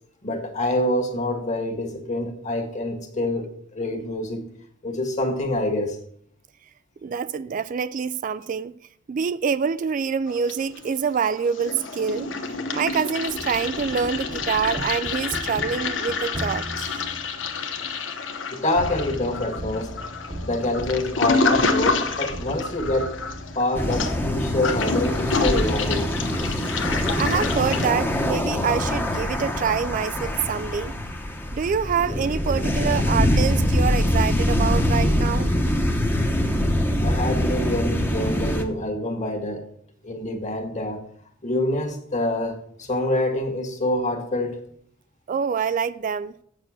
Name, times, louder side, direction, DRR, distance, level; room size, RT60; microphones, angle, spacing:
voice 1, 0.2-4.4 4.8-6.0 18.5-19.9 20.4-23.2 23.6-26.1 37.0-39.7 40.0-41.0 41.4-44.6, left 1 dB, 40° left, 1.8 m, -26 dB
voice 2, 7.0-8.7 9.1-12.3 12.7-17.0 27.2-30.9 31.5-35.5 45.3-46.3, right 6 dB, 45° right, 0.3 m, -26 dB
Toilet flush, 10.3-11.1 11.4-27.9, left 4 dB, 70° left, 1.0 m, -28 dB
sound 1, 13.3-17.9 18.8-23.6, equal, 25° right, 0.9 m, -37 dB
sound 2, 23.8-38.6, left 1 dB, 10° left, 1.0 m, -24 dB
7.9 x 6.7 x 6.3 m
head